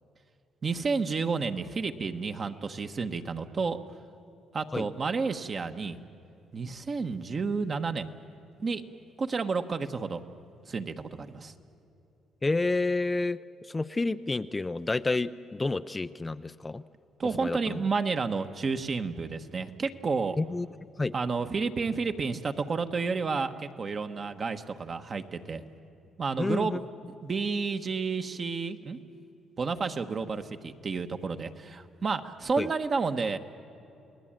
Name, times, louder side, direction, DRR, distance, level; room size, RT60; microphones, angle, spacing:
voice 1, 0.6-3.8 4.5-6.0 6.5-8.1 8.6-8.8 9.2-10.2 10.6-11.5 17.2-20.4 21.1-25.6 26.2-26.8 27.2-29.0 29.6-33.4, right 4 dB, 40° right, 7 dB, 1.3 m, -31 dB
voice 2, 12.4-16.8 17.4-17.8 20.4-20.7 21.0-21.1 26.4-26.8 32.6-32.7, left 3 dB, 20° left, 11 dB, 0.5 m, -29 dB
29.5 x 19.5 x 8.9 m, 2.8 s
cardioid pair, 90°, 0 cm